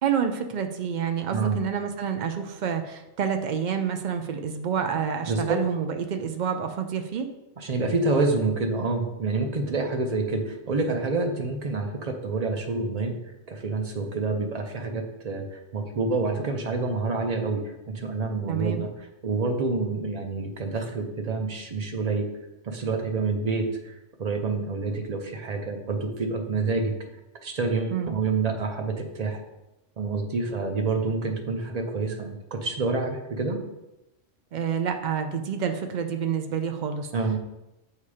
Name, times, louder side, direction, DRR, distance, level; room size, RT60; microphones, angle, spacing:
voice 1, 0.0-7.3 18.5-18.8 27.9-28.1 34.5-37.1, right 7 dB, 90° right, 6 dB, 0.4 m, -28 dB
voice 2, 5.3-5.6 7.6-13.2 13.5-18.9 19.2-22.3 22.6-26.9 27.4-29.4 30.0-33.6 37.1-37.4, right 3 dB, 40° right, 4 dB, 0.7 m, -27 dB
8.1 x 2.8 x 4.9 m, 0.96 s
omnidirectional pair, 1.4 m